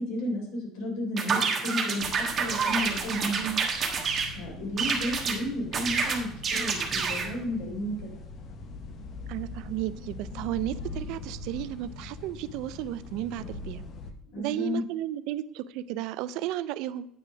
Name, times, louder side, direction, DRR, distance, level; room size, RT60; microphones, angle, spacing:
voice 1, 0.0-3.5 4.3-8.1 14.3-14.8, left 1 dB, 75° left, 0 dB, 3.7 m, -32 dB
sound 1, 1.2-4.3 4.8-5.4 5.7-7.3, right 5 dB, 25° right, 1.3 m, -28 dB
sound 2, 2.0-14.1, left 3 dB, 35° left, 0.9 m, -42 dB
voice 2, 3.4-3.7 9.3-13.8 14.4-17.1, right 13 dB, 65° right, 15 dB, 0.5 m, -33 dB
8.9 x 5.5 x 6.2 m, 0.68 s
cardioid pair, 170°, 0 cm